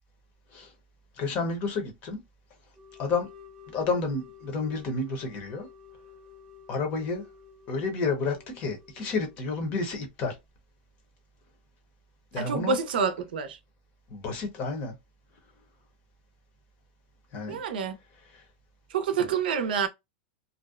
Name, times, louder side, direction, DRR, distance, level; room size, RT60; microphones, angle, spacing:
voice 1, 1.2-2.2 3.0-3.3 3.7-5.7 6.7-7.2 7.7-10.4 12.3-12.8 14.1-14.9 17.3-17.6 18.3-18.4 19.2-19.3, left 4 dB, 30° left, 0.7 m, -30 dB
sound 1, 2.7-9.5, left 7 dB, 10° right, 0.5 m, -52 dB
voice 2, 12.4-13.6 17.5-18.0 18.9-19.9, right 6 dB, 85° right, 0.6 m, -27 dB
2.5 x 2.1 x 2.3 m
supercardioid pair, 165°, 5 cm